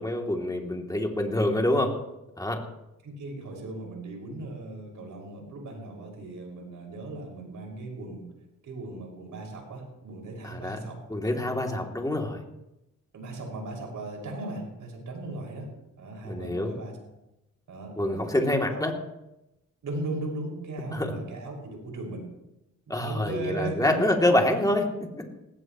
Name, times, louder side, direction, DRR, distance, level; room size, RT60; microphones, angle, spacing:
voice 1, 0.0-1.9 2.4-2.6 10.4-10.8 11.1-12.4 16.3-16.7 18.0-18.9 20.9-21.1 22.9-24.9, left 1 dB, 10° left, 1 dB, 2.8 m, -26 dB
voice 2, 3.0-8.3 8.6-11.0 11.7-11.8 13.1-15.7 16.0-17.0 17.7-18.9 19.8-22.2 22.9-23.9, right 2 dB, 70° right, 0 dB, 5.8 m, -37 dB
18.5 x 16.5 x 3.1 m, 0.92 s
cardioid pair, 75°, 32 cm